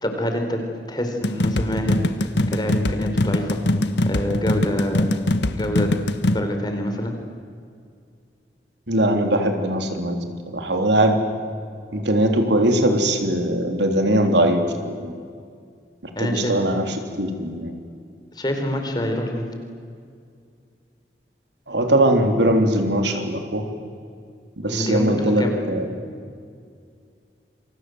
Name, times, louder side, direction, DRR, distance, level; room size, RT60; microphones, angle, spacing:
voice 1, 0.0-0.6 0.9-3.6 4.0-5.1 5.5-5.9 6.3-7.2 16.2-16.5 18.3-19.5 24.7-25.5, equal, 25° left, 4 dB, 4.2 m, -26 dB
sound 1, 1.2-6.4, left 1 dB, 85° left, 1.4 m, -22 dB
voice 2, 8.9-10.2 10.5-11.2 11.9-15.1 16.2-17.7 21.7-23.6 24.6-25.9, right 1 dB, 85° right, 5 dB, 3.6 m, -20 dB
28.5 x 24.0 x 8.0 m, 2.2 s
head